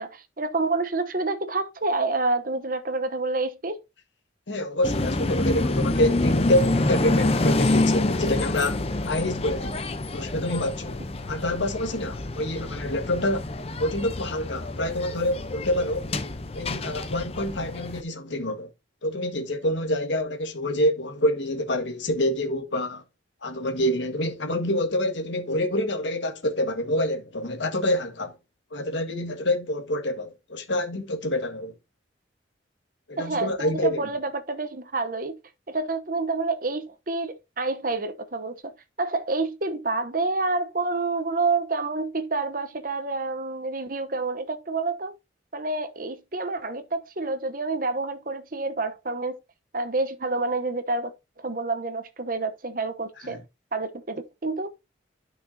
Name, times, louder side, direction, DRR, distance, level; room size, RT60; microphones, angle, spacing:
voice 1, 0.0-3.8 33.2-35.3 35.7-45.2 45.5-49.4 49.7-53.4 53.7-54.8, right 3 dB, 45° right, 0.9 m, -28 dB
voice 2, 4.5-9.7 10.1-11.0 11.3-13.5 13.8-16.1 16.5-18.7 19.0-23.0 23.4-28.3 28.7-31.7 33.1-34.0 53.3-53.4, left 1 dB, 75° left, 1.7 m, -27 dB
sound 1, 4.8-18.0, left 2 dB, 30° left, 0.7 m, -27 dB
11.5 x 6.0 x 2.8 m
head